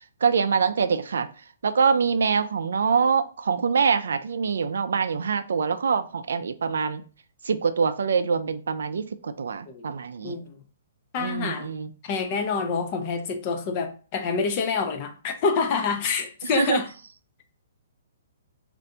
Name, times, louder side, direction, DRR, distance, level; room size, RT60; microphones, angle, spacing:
voice 1, 0.2-1.3 1.6-7.1 7.5-10.4 11.2-11.9 16.5-16.8, right 5 dB, 80° right, 0.3 m, -24 dB
voice 2, 10.2-10.5 11.1-11.7 12.0-16.9, left 5 dB, 25° left, 0.4 m, -27 dB
3.3 x 2.5 x 2.7 m
hypercardioid pair, 170°, 0 cm